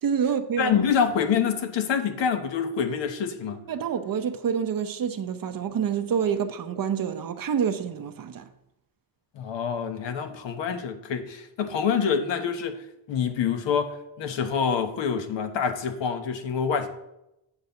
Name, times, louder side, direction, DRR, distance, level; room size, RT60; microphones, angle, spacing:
voice 1, 0.0-0.7 3.7-8.5, right 7 dB, 50° right, 0.7 m, -27 dB
voice 2, 0.6-3.6 9.3-16.9, left 7 dB, 75° left, 1.2 m, -26 dB
8.1 x 4.0 x 6.8 m
cardioid pair, 85°, 45 cm